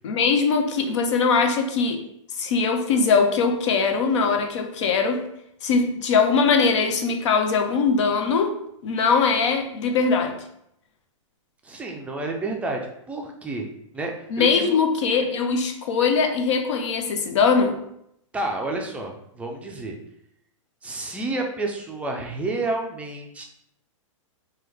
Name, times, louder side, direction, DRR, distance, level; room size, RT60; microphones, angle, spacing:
voice 1, 0.0-2.0 2.4-5.3 5.6-8.6 8.8-10.4 14.3-17.8, left 5 dB, 60° left, 5 dB, 0.6 m, -21 dB
voice 2, 11.6-13.7 13.9-14.8 18.3-20.0 20.8-23.4, right 2 dB, 10° right, 1 dB, 0.4 m, -30 dB
3.0 x 2.2 x 3.4 m, 0.76 s
hypercardioid pair, 125°, 17 cm